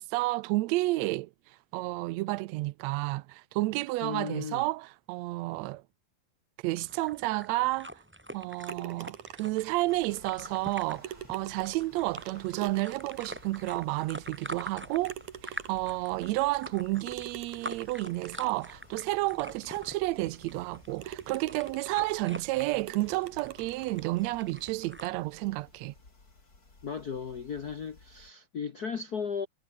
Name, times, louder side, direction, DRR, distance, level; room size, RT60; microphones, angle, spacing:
voice 1, 0.0-5.8 6.6-7.9 8.3-15.1 15.4-25.9, right 19 dB, 85° right, 1.5 m, -31 dB
voice 2, 4.0-4.6 26.8-29.5, left 6 dB, 70° left, 0.9 m, -36 dB
sound 1, 6.8-25.1, equal, 5° right, 2.8 m, -46 dB
sound 2, 8.7-9.6 10.7-10.8 11.0-13.6 14.2-14.3 15.0-16.0 17.1-18.6 19.3-19.4 19.9-20.0 20.5-20.7 21.0-22.3 22.9-24.0, right 11 dB, 70° right, 2.7 m, -44 dB
sound 3, 9.9-28.3, left 3 dB, 25° left, 4.2 m, -57 dB
omnidirectional pair, 3.8 m